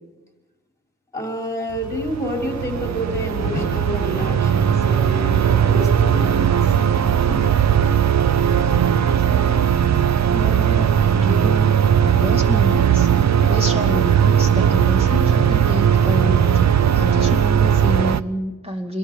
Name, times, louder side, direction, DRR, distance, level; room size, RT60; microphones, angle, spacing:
voice 1, 1.1-6.7 7.3-7.4, equal, 10° left, 0 dB, 5.2 m, -29 dB
Thunder / Rain, 1.3-18.1, left 3 dB, 25° left, 2.1 m, -42 dB
sound 1, 1.7-18.2, right 8 dB, 55° right, 0.6 m, -18 dB
voice 2, 10.3-19.0, left 1 dB, 20° right, 3 dB, 2.5 m, -29 dB
27.5 x 21.5 x 4.6 m, 1.2 s
wide cardioid pair, 125°, 32 cm